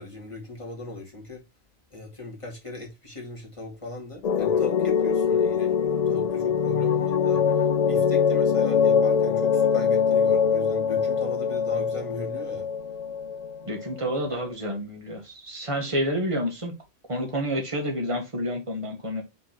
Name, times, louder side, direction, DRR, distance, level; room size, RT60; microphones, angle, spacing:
voice 1, 0.0-1.4 1.9-12.7, left 2 dB, 30° left, 2.2 m, -39 dB
sound 1, 4.2-14.4, left 6 dB, 55° left, 0.4 m, -23 dB
voice 2, 13.7-16.7 17.1-19.2, equal, 30° right, 1.9 m, -29 dB
5.7 x 3.7 x 5.8 m
omnidirectional pair, 1.1 m